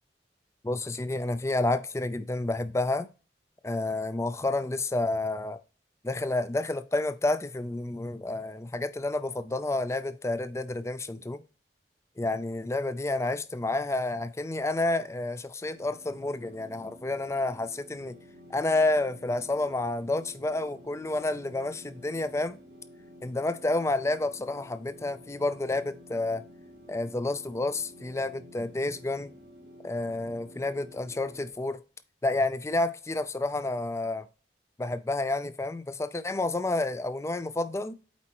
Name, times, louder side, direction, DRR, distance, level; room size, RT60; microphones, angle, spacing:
voice 1, 0.6-3.1 3.6-5.6 6.0-11.4 12.2-18.2 18.5-22.6 23.2-26.4 26.9-29.3 29.8-31.8 32.2-34.3 34.8-37.9, left 2 dB, 15° left, 0.4 m, -30 dB
sound 1, 15.7-31.5, left 1 dB, 75° right, 1.2 m, -51 dB
8.3 x 4.3 x 3.0 m
head